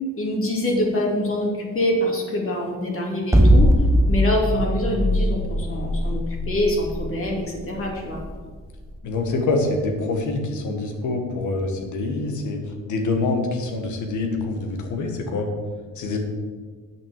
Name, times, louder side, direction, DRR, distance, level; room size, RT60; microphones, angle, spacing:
voice 1, 0.2-3.7 4.1-8.2, left 1 dB, 45° left, -1 dB, 2.8 m, -25 dB
sound 1, 3.3-9.5, equal, 10° right, 1.0 m, -20 dB
voice 2, 9.0-15.5 16.0-16.2, left 3 dB, 75° left, 3 dB, 1.9 m, -25 dB
8.1 x 6.3 x 7.5 m, 1.5 s
cardioid pair, 90°, 30 cm